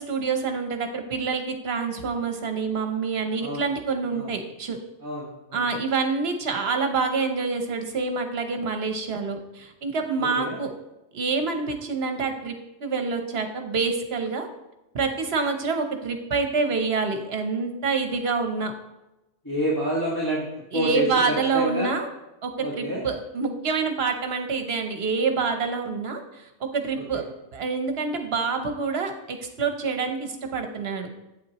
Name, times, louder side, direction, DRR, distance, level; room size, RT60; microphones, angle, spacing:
voice 1, 0.0-4.8 5.5-10.7 11.1-14.5 14.9-18.7 20.7-22.1 22.4-27.3 27.5-31.1, right 4 dB, 60° right, 6 dB, 1.2 m, -27 dB
voice 2, 5.0-5.6 10.2-10.6 19.4-20.5 20.7-21.9 22.6-23.0, equal, 15° left, -7 dB, 1.6 m, -28 dB
8.4 x 8.3 x 3.0 m, 0.95 s
omnidirectional pair, 1.2 m